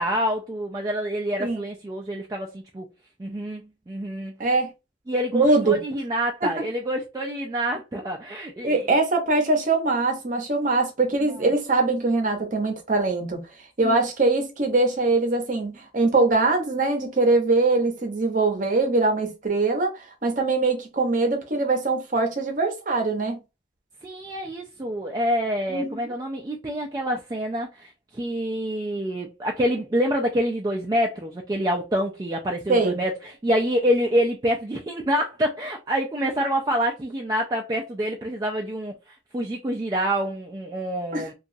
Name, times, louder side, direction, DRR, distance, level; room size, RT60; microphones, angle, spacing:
voice 1, 0.0-2.9 3.2-4.3 5.1-8.8 13.8-14.1 24.0-41.3, equal, 20° right, 0.3 m, -27 dB
voice 2, 5.3-5.8 6.4-6.5 8.6-13.4 13.8-23.4 25.7-26.1 32.7-33.0 41.1-41.3, right 3 dB, 45° right, 0.7 m, -22 dB
2.8 x 2.3 x 2.6 m
head